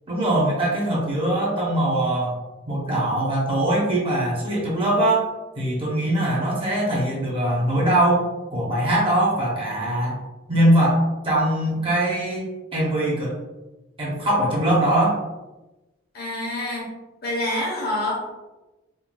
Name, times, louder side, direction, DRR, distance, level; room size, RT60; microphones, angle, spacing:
voice 1, 0.1-2.3 2.7-5.3 5.6-8.2 8.5-10.2 10.5-12.5 12.7-13.4 14.0-15.2, right 1 dB, 25° right, -4 dB, 0.7 m, -21 dB
voice 2, 16.1-16.9 17.2-18.3, left 1 dB, 45° left, -2 dB, 0.7 m, -27 dB
3.6 x 2.2 x 2.3 m, 1.1 s
head